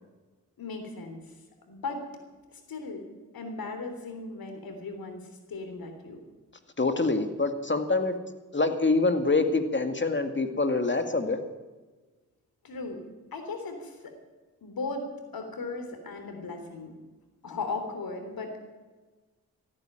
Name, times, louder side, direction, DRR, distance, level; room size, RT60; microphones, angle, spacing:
voice 1, 0.6-1.3 1.7-2.0 2.5-3.1 3.3-6.2 12.6-13.0 13.3-14.1 14.6-16.9 17.4-18.6, left 3 dB, 70° left, 5 dB, 3.5 m, -37 dB
voice 2, 6.8-8.2 8.5-11.4, left 3 dB, 30° left, 7 dB, 2.2 m, -25 dB
15.0 x 9.5 x 9.0 m, 1.3 s
supercardioid pair, 45°, 36 cm